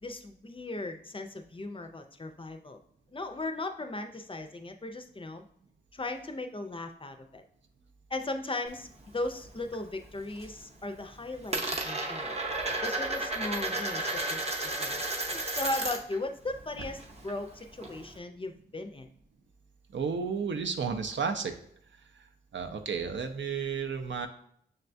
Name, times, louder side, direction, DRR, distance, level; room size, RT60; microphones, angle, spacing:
voice 1, 0.0-2.8 3.1-5.4 5.9-7.4 8.1-8.9 9.1-12.4 12.8-15.0 15.3-19.1, left 2 dB, 30° left, 6 dB, 0.4 m, -37 dB
Coin (dropping), 8.7-9.8 10.1-10.6 10.9-16.2 16.5-18.2, right 2 dB, 35° right, 0.6 m, -33 dB
voice 2, 19.9-21.6 22.5-24.3, right 5 dB, 85° right, 6 dB, 0.4 m, -32 dB
6.3 x 2.2 x 2.5 m, 0.65 s
wide cardioid pair, 65°, 19 cm